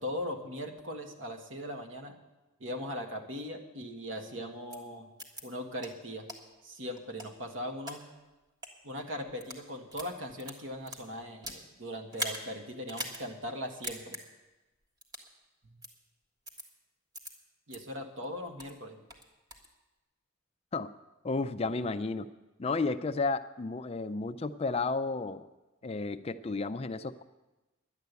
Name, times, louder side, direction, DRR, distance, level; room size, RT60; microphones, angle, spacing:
voice 1, 0.0-2.2 2.6-5.1 5.4-6.3 6.6-8.0 8.8-14.2 15.6-15.8 17.7-19.0, equal, 65° right, 4 dB, 1.6 m, -39 dB
sound 1, 4.7-4.8 5.2-5.4 5.8-5.9 6.3-6.4 6.9-8.0 8.5-8.7 9.3-9.6 9.9-11.6 12.1-12.4 12.9-13.2 13.5-13.6 13.8-14.2 15.0-15.3 15.8-15.9 16.5-16.6 17.1-17.3 17.7-17.8 18.2-18.7 19.1-19.7, equal, 20° right, 1.5 m, -40 dB
voice 2, 21.2-22.3 22.6-25.5 25.8-27.2, left 3 dB, 30° left, 11 dB, 0.4 m, -32 dB
11.0 x 10.5 x 8.2 m, 1.1 s
head